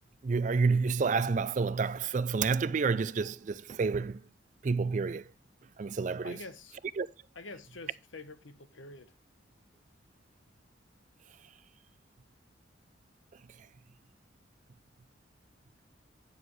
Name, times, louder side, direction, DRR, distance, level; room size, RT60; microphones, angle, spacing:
voice 1, 0.2-4.2 4.6-5.3 5.8-6.4 7.0-7.1, right 4 dB, 40° right, 0.3 m, -29 dB
voice 2, 6.2-6.8 7.3-9.1, left 3 dB, 75° left, 1.0 m, -47 dB
9.4 x 7.4 x 3.2 m
head